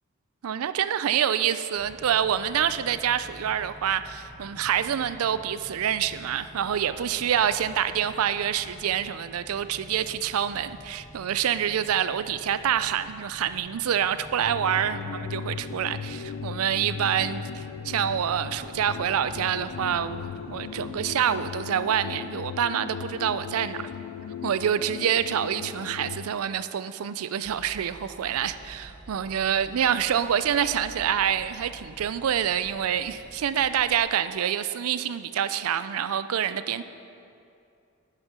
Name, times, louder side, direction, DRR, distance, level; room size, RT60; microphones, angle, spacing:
voice 1, 0.4-23.8 24.4-36.8, right 9 dB, 75° right, 13 dB, 0.4 m, -27 dB
sound 1, 1.7-21.0, equal, 50° right, 2.2 m, -49 dB
sound 2, 14.4-26.4, left 7 dB, 70° left, 0.3 m, -37 dB
sound 3, 27.4-34.0, right 2 dB, 20° right, 0.6 m, -49 dB
9.9 x 6.5 x 6.1 m, 2.6 s
head